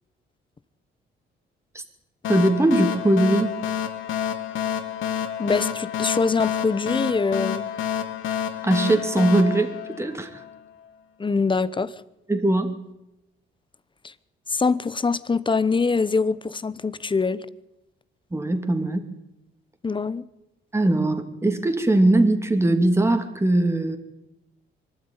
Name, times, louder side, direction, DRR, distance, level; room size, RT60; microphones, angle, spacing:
sound 1, 2.2-10.6, left 9 dB, 80° left, 1.8 m, -29 dB
voice 1, 2.3-3.6 8.6-10.4 12.3-12.7 18.3-19.1 20.7-24.0, right 1 dB, 15° right, 2.8 m, -20 dB
voice 2, 5.4-7.7 11.2-11.9 14.0-14.1 14.5-17.5 19.8-20.2, left 4 dB, 25° left, 1.1 m, -23 dB
24.0 x 12.5 x 9.8 m
cardioid pair, 90°, 20 cm